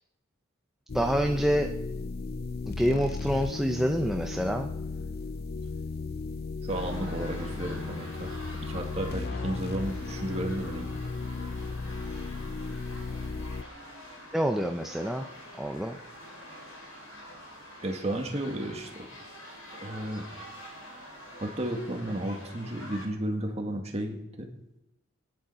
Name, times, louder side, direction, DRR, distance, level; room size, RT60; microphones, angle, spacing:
sound 1, 0.9-13.6, left 3 dB, 45° left, 0.5 m, -35 dB
voice 1, 0.9-1.7 2.7-4.7 14.3-15.3 15.6-16.0, equal, ahead, 3 dB, 0.6 m, -27 dB
voice 2, 6.6-10.9 17.8-19.1 19.8-20.5 21.4-24.5, right 1 dB, 30° right, 2 dB, 1.9 m, -33 dB
sound 2, 6.7-23.1, equal, 85° left, 5.3 m, -46 dB
18.5 x 10.5 x 5.7 m, 0.96 s
head